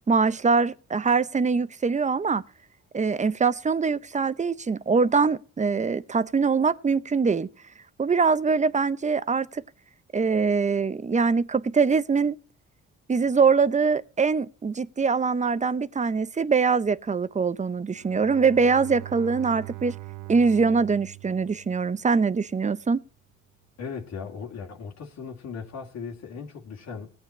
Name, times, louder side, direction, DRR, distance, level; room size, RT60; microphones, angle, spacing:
voice 1, 0.1-2.4 2.9-7.5 8.0-9.6 10.1-12.4 13.1-20.0 20.3-23.0, right 5 dB, 25° right, 0.7 m, -23 dB
Bowed string instrument, 17.9-22.3, right 21 dB, 85° right, 0.7 m, -41 dB
voice 2, 23.8-27.1, left 5 dB, 65° left, 2.1 m, -37 dB
17.0 x 8.7 x 4.2 m
cardioid pair, 90°, 30 cm